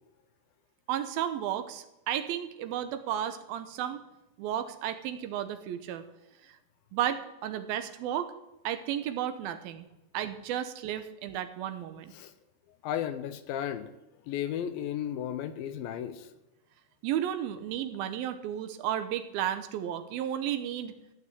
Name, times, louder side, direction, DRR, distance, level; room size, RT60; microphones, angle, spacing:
voice 1, 0.9-4.1 4.4-6.0 6.9-8.3 8.6-9.9 10.1-12.1 17.0-20.9, right 10 dB, 75° right, 9 dB, 2.7 m, -33 dB
voice 2, 12.8-13.9 14.3-16.3, left 10 dB, 80° left, 11 dB, 2.4 m, -34 dB
14.5 x 6.4 x 8.4 m, 0.96 s
omnidirectional pair, 4.4 m